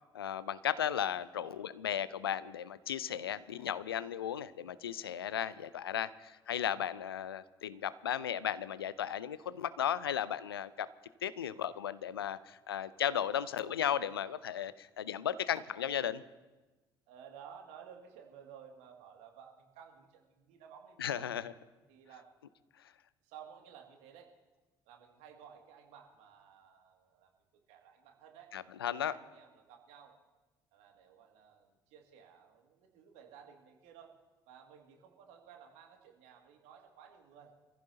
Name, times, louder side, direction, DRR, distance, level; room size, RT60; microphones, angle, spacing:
voice 1, 0.1-10.9 11.2-16.2 21.0-21.5 28.5-29.1, left 9 dB, 80° left, 17 dB, 0.5 m, -35 dB
voice 2, 1.2-1.6 17.1-21.3 21.9-22.3 23.2-24.3 24.9-27.3 27.7-28.5 28.9-30.2 30.7-34.1 34.4-37.5, right 8 dB, 65° right, 2 dB, 2.3 m, -55 dB
25.5 x 15.0 x 2.8 m, 1.2 s
figure-of-eight pair, 55°, 12 cm